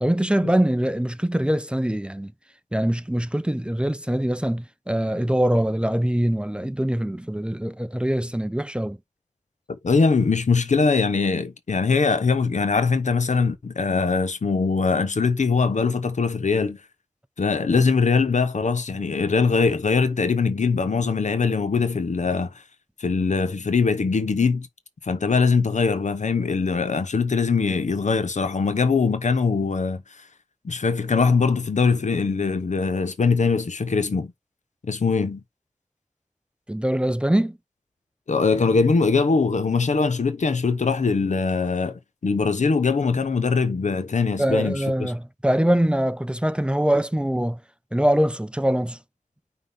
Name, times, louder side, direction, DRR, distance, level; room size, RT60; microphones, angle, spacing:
voice 1, 0.0-2.3 2.7-9.0 36.7-37.6 44.4-47.6 47.9-49.0, right 1 dB, 10° right, 0.6 m, -23 dB
voice 2, 9.8-16.8 17.4-22.5 23.0-24.7 25.0-30.0 30.6-34.3 34.8-35.4 38.3-45.1, left 4 dB, 85° left, 1.0 m, -22 dB
5.6 x 3.8 x 5.4 m
wide cardioid pair, 65°, 12 cm